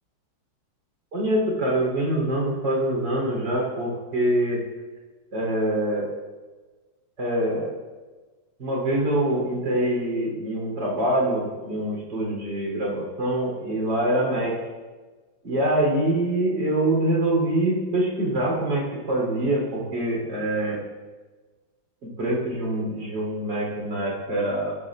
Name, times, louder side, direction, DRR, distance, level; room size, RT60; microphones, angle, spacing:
voice 1, 1.1-4.6 5.3-6.1 7.2-7.7 8.6-14.5 15.4-20.8 22.0-24.8, right 1 dB, 60° right, -3 dB, 4.4 m, -25 dB
14.5 x 12.0 x 2.5 m, 1.3 s
omnidirectional pair, 2.2 m